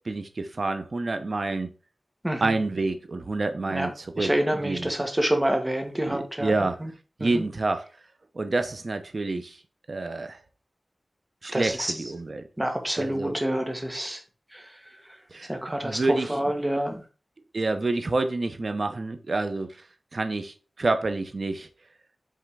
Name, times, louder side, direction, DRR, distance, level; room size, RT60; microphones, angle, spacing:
voice 1, 0.1-1.7 2.4-4.3 4.6-4.9 6.1-6.8 7.2-7.8 8.3-9.6 9.9-10.4 11.4-12.4 13.0-13.4 15.3-15.5 15.8-16.3 17.5-19.8 20.1-21.7, right 3 dB, 55° right, 0.9 m, -28 dB
voice 2, 4.2-6.5 6.8-6.9 7.2-7.4 11.5-11.9 12.6-14.2 14.5-14.6 15.5-16.0 16.3-17.0, right 1 dB, 15° right, 1.4 m, -27 dB
5.7 x 3.6 x 4.8 m
wide cardioid pair, 75°, 0 cm